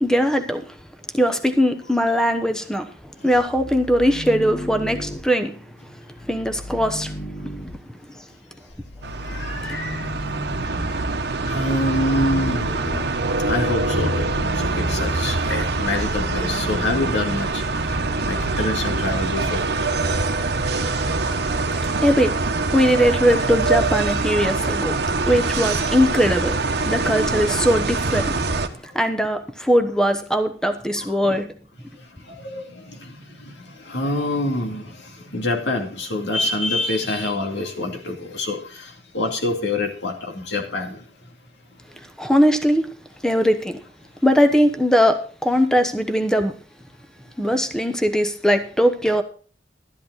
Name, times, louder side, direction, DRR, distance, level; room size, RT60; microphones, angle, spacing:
voice 1, 0.0-0.8 1.1-2.9 3.2-5.6 5.8-5.9 6.2-7.1 7.4-7.5 9.6-9.8 22.0-22.4 22.7-25.0 25.3-26.6 26.9-28.4 28.9-31.5 42.2-43.0 43.2-43.8 44.2-46.5 47.4-49.2, equal, 5° left, 1.0 m, -20 dB
sound 1, 3.3-5.2 6.2-7.8 8.7-10.7 11.5-18.7, left 1 dB, 35° left, 1.2 m, -34 dB
sound 2, 9.0-28.7, right 3 dB, 65° right, 1.1 m, -24 dB
voice 2, 9.2-10.1 11.5-12.7 13.5-14.3 14.6-18.0 18.2-19.6 26.8-26.9 31.0-31.1 32.2-41.0, left 1 dB, 80° left, 2.5 m, -26 dB
12.5 x 11.0 x 4.0 m
head